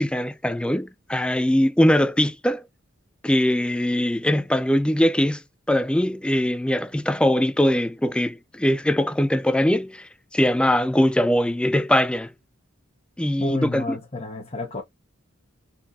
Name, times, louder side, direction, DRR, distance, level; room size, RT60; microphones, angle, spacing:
voice 1, 0.0-2.6 3.2-5.4 5.7-10.1 10.3-12.3 13.2-14.0, left 1 dB, 5° left, 0.4 m, -21 dB
voice 2, 13.4-14.8, left 2 dB, 30° left, 1.2 m, -29 dB
4.2 x 4.2 x 2.9 m
head